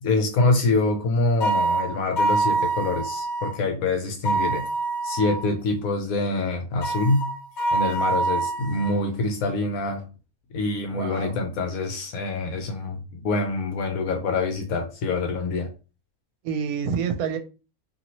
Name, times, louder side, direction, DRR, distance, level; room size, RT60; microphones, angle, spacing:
voice 1, 0.0-4.6 5.0-7.3 7.7-10.1 10.5-15.7, left 3 dB, 75° left, 1.0 m, -25 dB
sound 1, 1.4-3.5 4.2-5.5 6.8-9.0, right 3 dB, 45° left, 0.6 m, -25 dB
voice 2, 10.9-11.4 16.4-17.4, right 6 dB, 80° right, 1.0 m, -28 dB
2.7 x 2.7 x 2.9 m
omnidirectional pair, 1.6 m